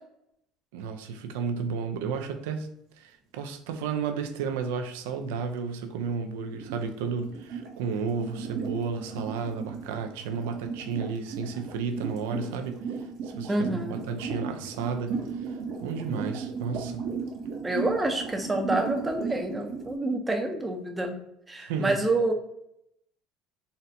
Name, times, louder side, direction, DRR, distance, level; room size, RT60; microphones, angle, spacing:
voice 1, 0.7-2.7 3.0-15.6 15.8-17.0 21.6-21.9, right 5 dB, 90° right, 7 dB, 0.4 m, -33 dB
sound 1, 6.5-20.0, right 5 dB, 65° right, 0.8 m, -35 dB
voice 2, 13.5-14.0 17.6-21.2 21.5-22.3, right 2 dB, 15° right, 4 dB, 0.6 m, -28 dB
4.1 x 2.1 x 2.6 m, 0.77 s
supercardioid pair, 110°, 0 cm